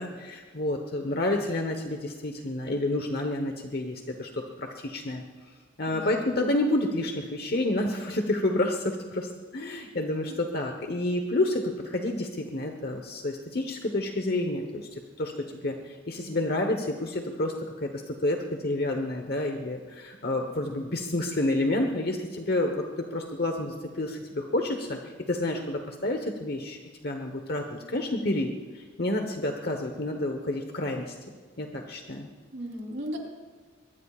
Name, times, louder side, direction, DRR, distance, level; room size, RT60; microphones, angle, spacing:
voice 1, 0.0-5.2 5.8-14.9 15.2-15.3 15.6-17.5 17.8-31.1 31.6-32.3, left 1 dB, 50° left, 4 dB, 1.2 m, -29 dB
voice 2, 5.9-6.5 10.3-10.4 32.5-33.2, equal, 70° right, 0 dB, 3.7 m, -37 dB
23.5 x 21.5 x 2.5 m, 1.5 s
head